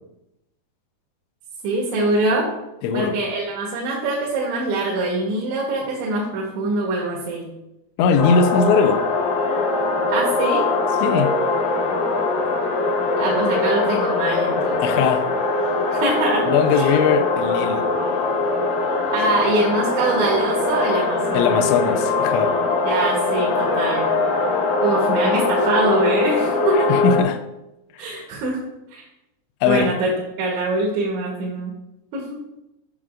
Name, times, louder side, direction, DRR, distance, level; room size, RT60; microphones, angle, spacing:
voice 1, 1.6-2.5 2.9-7.5 10.1-10.7 13.2-15.0 15.9-16.4 16.7-16.9 19.1-21.6 22.8-24.1 24.8-27.0 28.0-28.6 28.9-29.1 29.7-30.1 30.4-31.7 32.1-32.4, right 2 dB, 85° right, 3.4 m, -23 dB
voice 2, 2.8-3.2 8.0-9.1 11.0-11.4 14.8-15.3 16.5-17.9 21.3-22.6 26.9-27.4 28.0-28.3 29.6-29.9, left 6 dB, 90° left, 2.9 m, -20 dB
sound 1, 8.2-27.2, left 3 dB, 75° left, 2.1 m, -21 dB
9.2 x 6.0 x 2.4 m
omnidirectional pair, 5.1 m